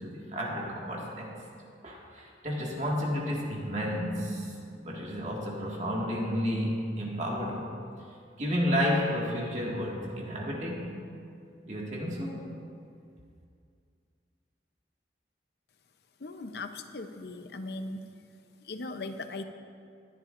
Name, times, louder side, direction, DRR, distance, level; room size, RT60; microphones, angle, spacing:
voice 1, 0.0-1.3 1.8-7.7 8.4-11.0 11.6-12.4, equal, 40° right, -3 dB, 1.9 m, -31 dB
voice 2, 16.2-18.1 18.6-19.4, left 2 dB, 65° left, 8 dB, 0.7 m, -38 dB
20.5 x 10.5 x 2.6 m, 2.3 s
head